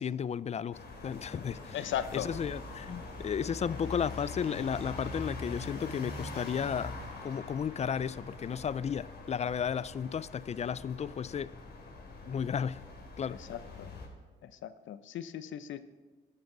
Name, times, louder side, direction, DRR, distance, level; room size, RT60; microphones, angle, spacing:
voice 1, 0.0-11.5 12.3-12.8 13.2-13.4, left 7 dB, 35° left, 0.4 m, -34 dB
sound 1, 0.7-14.1, left 3 dB, 55° left, 3.2 m, -43 dB
voice 2, 1.7-2.3 5.6-5.7 13.5-13.9 14.4-15.8, left 10 dB, 75° left, 0.8 m, -37 dB
17.0 x 12.5 x 3.9 m
cardioid pair, 90°, 20 cm